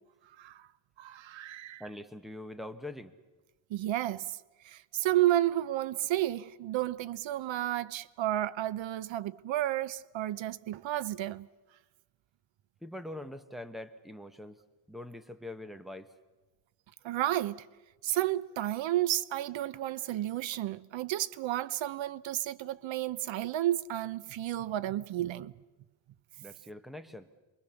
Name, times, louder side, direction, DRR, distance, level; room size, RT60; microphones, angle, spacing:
voice 1, 0.4-0.7 1.0-1.8 3.7-4.4 4.6-11.5 17.0-17.7 18.0-25.5, right 13 dB, 90° right, 0.8 m, -32 dB
voice 2, 1.8-3.1 12.8-14.6 14.9-16.1 26.4-27.3, left 1 dB, ahead, 1.1 m, -43 dB
28.0 x 22.5 x 7.0 m
wide cardioid pair, 160°, 44 cm